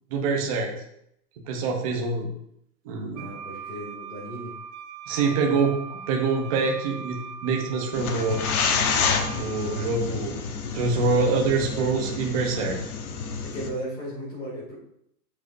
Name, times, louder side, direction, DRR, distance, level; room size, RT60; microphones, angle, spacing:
voice 1, 0.1-0.7 1.5-2.3 2.8-3.3 5.1-8.4 9.4-10.4 10.7-12.8, right 4 dB, 20° right, 1 dB, 0.7 m, -25 dB
voice 2, 3.1-4.5 11.2-11.4 12.2-12.3 13.4-14.8, right 1 dB, 10° left, -6 dB, 2.2 m, -36 dB
Wind instrument woodwind instrument, 3.2-9.9, right 6 dB, 85° right, 0.9 m, -40 dB
sound 1, 7.9-13.7, left 5 dB, 60° left, 1.2 m, -29 dB
11.5 x 5.3 x 2.6 m, 0.75 s
supercardioid pair, 170°, 49 cm